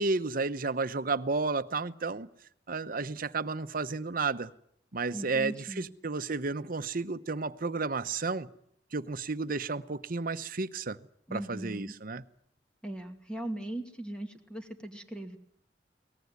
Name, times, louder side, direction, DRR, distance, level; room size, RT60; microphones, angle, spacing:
voice 1, 0.0-2.3 2.7-4.5 4.9-8.5 8.9-11.0 11.3-12.2, right 3 dB, 55° right, 1.0 m, -32 dB
voice 2, 5.1-5.9 11.3-11.9 12.8-15.4, right 1 dB, 5° left, 2.4 m, -39 dB
23.0 x 19.0 x 9.6 m
head